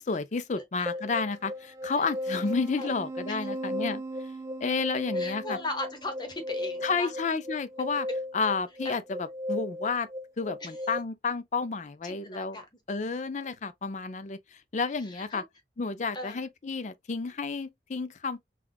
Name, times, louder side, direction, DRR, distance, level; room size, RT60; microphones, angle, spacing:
voice 1, 0.0-4.0 4.6-5.6 6.8-8.1 8.3-9.0 9.5-10.1 10.4-12.6 12.9-15.4 15.8-18.4, left 4 dB, 40° left, 0.5 m, -31 dB
sound 1, 0.9-11.0, left 1 dB, 15° right, 0.3 m, -36 dB
voice 2, 5.1-7.1 8.8-9.0 10.6-10.7 12.0-12.6 14.9-15.4 16.1-16.5, left 2 dB, 25° left, 1.0 m, -38 dB
5.9 x 2.4 x 2.3 m
head